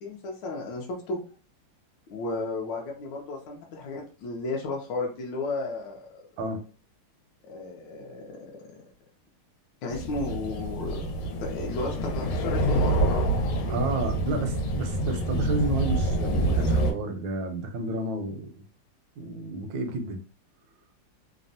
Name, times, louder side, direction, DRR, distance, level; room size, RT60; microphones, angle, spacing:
voice 1, 0.0-1.2 2.1-6.3 7.5-8.4 9.8-13.1 13.5-13.8, left 3 dB, 75° left, 0 dB, 1.1 m, -34 dB
sound 1, 9.9-16.9, right 1 dB, 90° left, 1.5 m, -26 dB
voice 2, 13.7-18.5 19.2-20.2, right 3 dB, 75° right, 5 dB, 1.1 m, -31 dB
3.4 x 2.1 x 2.6 m, 0.38 s
omnidirectional pair, 2.3 m